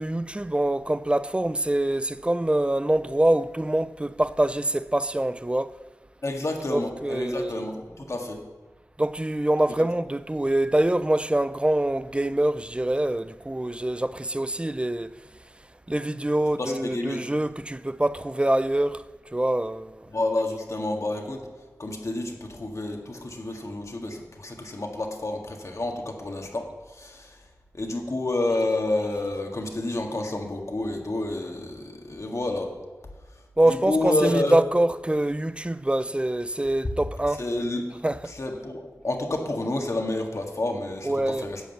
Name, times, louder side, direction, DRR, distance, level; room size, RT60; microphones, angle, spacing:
voice 1, 0.0-5.7 6.7-7.7 9.0-15.2 15.9-19.0 19.3-20.0 33.6-37.5 38.0-38.3 41.0-41.5, right 1 dB, 20° right, 0.4 m, -25 dB
voice 2, 6.2-8.4 16.6-17.2 20.1-21.4 21.8-26.6 26.9-27.3 27.7-32.7 33.9-34.5 37.4-37.9 38.3-41.1 41.4-41.6, left 2 dB, 55° left, 1.7 m, -29 dB
11.0 x 5.2 x 7.9 m
cardioid pair, 45°, 6 cm